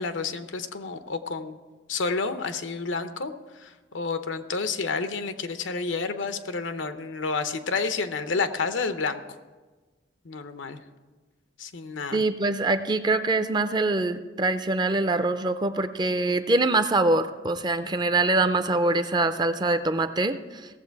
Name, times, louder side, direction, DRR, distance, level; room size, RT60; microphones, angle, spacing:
voice 1, 0.0-1.6 1.9-9.2 10.2-10.8 11.6-12.2, left 4 dB, 90° left, 9 dB, 0.8 m, -30 dB
voice 2, 12.1-20.4, right 2 dB, 25° right, 10 dB, 0.4 m, -24 dB
17.0 x 7.4 x 4.6 m, 1.3 s
head